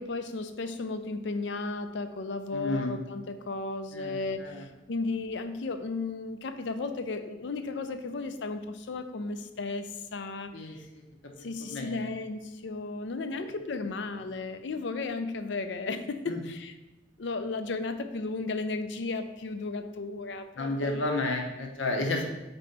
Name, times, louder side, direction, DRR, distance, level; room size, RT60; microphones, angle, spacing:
voice 1, 0.0-10.8 11.4-16.7 17.2-21.0, left 3 dB, 70° left, 9 dB, 0.5 m, -34 dB
voice 2, 2.5-3.0 3.9-4.6 10.5-11.0 11.4-12.1 13.3-13.5 16.3-16.4 20.6-22.2, left 2 dB, 85° left, 2 dB, 0.9 m, -32 dB
4.4 x 4.2 x 5.2 m, 1.0 s
head